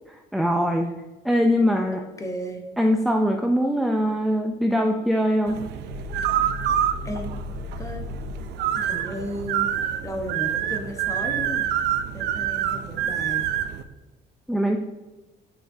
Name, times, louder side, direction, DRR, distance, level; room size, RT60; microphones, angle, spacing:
voice 1, 0.1-0.9 1.2-2.0 2.8-5.6 14.5-14.8, equal, ahead, 3 dB, 0.6 m, -22 dB
voice 2, 2.2-2.6 7.0-7.3 7.8-8.0 8.8-9.7 10.0-11.7 12.1-13.5, equal, 20° left, 4 dB, 1.2 m, -34 dB
sound 1, 5.5-13.8, right 10 dB, 85° right, 0.6 m, -27 dB
sound 2, 5.9-8.5, left 8 dB, 60° left, 2.4 m, -36 dB
10.0 x 5.5 x 2.8 m, 1.1 s
cardioid pair, 110°, 17 cm